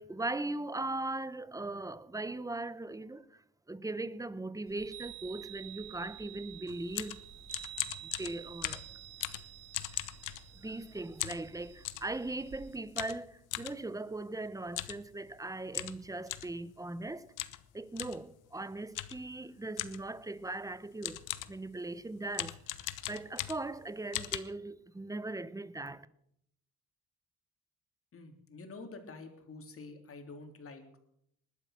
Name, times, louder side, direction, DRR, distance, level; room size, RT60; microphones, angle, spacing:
voice 1, 0.0-7.2 8.0-8.8 10.0-10.2 10.5-17.3 17.7-26.1, right 2 dB, 10° right, 0.9 m, -39 dB
Chime, 4.7-12.8, right 11 dB, 45° right, 4.1 m, -50 dB
sound 1, 6.7-10.8 11.2-12.1 13.0-13.8 14.7-15.0 15.3-15.4 15.7-16.6 17.4-17.6 18.0-18.2 18.9-19.3 19.8-20.1 20.7-20.8 21.0-21.6 22.3-23.8 24.1-24.4, left 15 dB, 90° left, 1.0 m, -38 dB
voice 2, 28.1-31.0, left 3 dB, 45° left, 3.6 m, -48 dB
20.0 x 12.0 x 6.0 m
cardioid pair, 90°, 30 cm